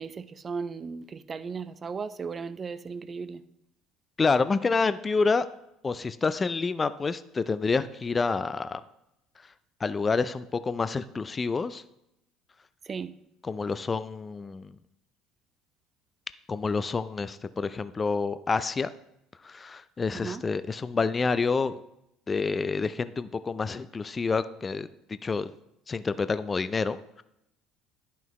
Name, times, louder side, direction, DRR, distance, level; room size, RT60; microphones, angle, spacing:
voice 1, 0.0-3.4 12.8-13.1 20.1-20.4, right 5 dB, 35° right, 14 dB, 0.5 m, -36 dB
voice 2, 4.2-5.5 5.8-8.8 9.8-11.8 13.4-14.7 16.5-18.9 19.4-21.8 22.3-24.9 25.2-25.5 25.9-27.2, left 4 dB, 30° left, 14 dB, 0.3 m, -28 dB
10.5 x 5.6 x 3.1 m, 0.83 s
hypercardioid pair, 70°, 0 cm